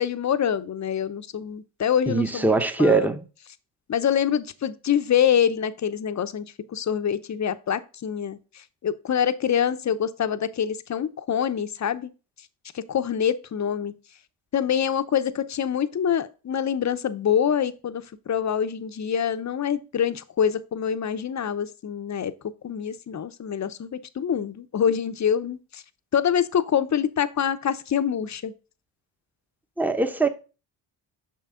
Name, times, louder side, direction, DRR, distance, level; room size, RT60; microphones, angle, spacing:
voice 1, 0.0-2.5 2.8-3.1 3.9-8.4 8.8-12.1 12.7-13.9 14.5-22.3 22.6-25.8 26.1-28.5, left 8 dB, 35° left, 0.7 m, -25 dB
voice 2, 2.1-3.2 29.8-30.3, right 3 dB, 5° right, 0.8 m, -21 dB
6.3 x 5.6 x 3.8 m
supercardioid pair, 60°, 48 cm